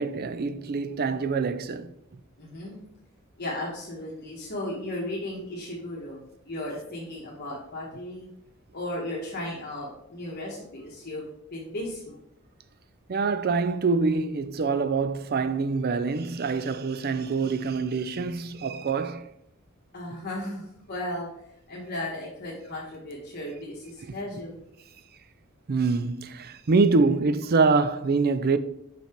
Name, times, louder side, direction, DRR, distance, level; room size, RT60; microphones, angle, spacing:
voice 1, 0.0-1.9 13.1-19.3 24.1-24.2 25.7-28.6, right 4 dB, 45° right, 0.4 m, -25 dB
voice 2, 2.4-2.8 3.4-6.2 6.4-8.3 8.7-11.2 11.5-12.2 19.9-21.3 21.7-24.6, left 1 dB, 50° left, 1.4 m, -35 dB
5.7 x 5.7 x 4.4 m
head